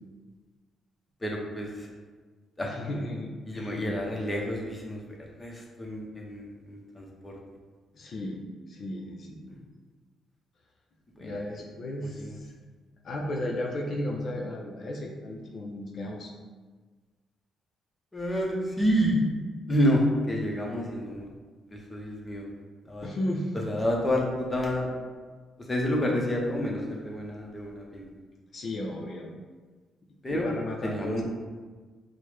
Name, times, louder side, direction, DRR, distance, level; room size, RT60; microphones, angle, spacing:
voice 1, 1.2-1.9 2.6-2.7 3.5-5.0 5.4-7.4 9.5-9.6 11.2-11.4 12.0-12.4 18.1-19.2 19.7-21.3 21.7-22.5 22.8-23.1 23.5-24.9 25.6-28.1 30.2-30.5 30.8-31.2, equal, 20° left, -1 dB, 0.7 m, -29 dB
voice 2, 2.6-4.0 7.9-8.4 8.7-9.7 11.2-12.5 13.0-16.3 23.0-23.5 28.5-29.3 30.3-31.2, left 1 dB, 55° left, -1 dB, 0.5 m, -34 dB
4.5 x 2.1 x 3.2 m, 1.4 s
cardioid pair, 90°, 0 cm